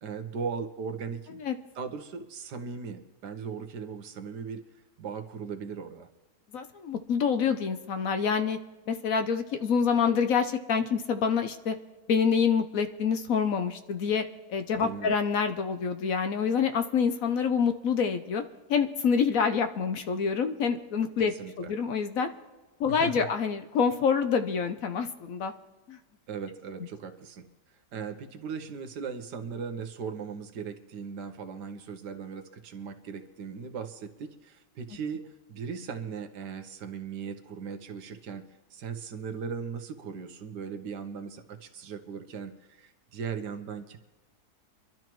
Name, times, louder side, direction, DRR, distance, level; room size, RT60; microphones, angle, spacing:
voice 1, 0.0-1.4 1.7-4.6 5.0-6.1 14.8-15.1 21.2-21.7 22.9-23.3 26.3-27.5 27.9-38.4 38.7-44.0, right 6 dB, 85° right, 7 dB, 1.6 m, -38 dB
voice 2, 6.5-8.6 8.9-11.7 12.1-14.2 14.5-18.4 18.7-22.3 22.8-25.5 25.9-26.0, left 6 dB, 60° left, 8 dB, 1.1 m, -27 dB
24.5 x 12.0 x 3.1 m, 1.2 s
omnidirectional pair, 1.8 m